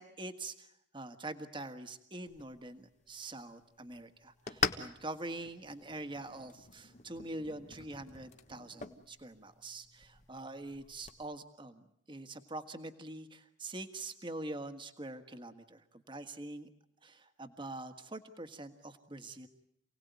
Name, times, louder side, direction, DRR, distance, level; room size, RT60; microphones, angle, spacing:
voice 1, 0.0-16.7 17.0-19.5, right 2 dB, 25° right, 8 dB, 1.6 m, -44 dB
sound 1, 2.3-11.2, left 5 dB, 40° left, 1.3 m, -43 dB
28.5 x 18.5 x 9.4 m, 0.73 s
head